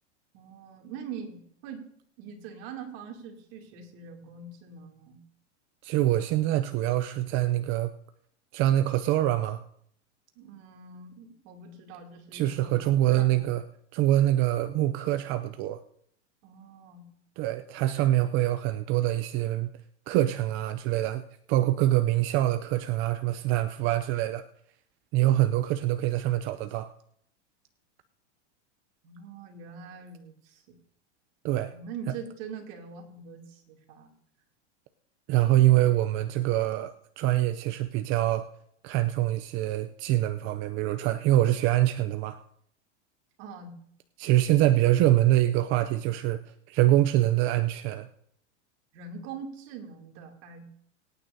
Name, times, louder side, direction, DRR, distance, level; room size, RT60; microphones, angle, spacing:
voice 1, 0.3-1.8 2.2-5.2 10.4-13.5 16.4-17.1 29.0-30.8 31.7-34.1 43.4-43.7 48.9-50.6, right 5 dB, 55° right, 1 dB, 2.7 m, -43 dB
voice 2, 5.8-7.9 8.5-9.6 12.3-13.6 13.9-15.8 17.4-19.7 20.1-21.2 21.5-24.4 25.1-26.9 31.4-31.7 35.3-38.5 38.8-42.4 44.2-46.4 46.7-48.1, right 14 dB, 35° right, 10 dB, 0.5 m, -24 dB
24.0 x 9.1 x 2.7 m, 0.67 s
supercardioid pair, 130°, 36 cm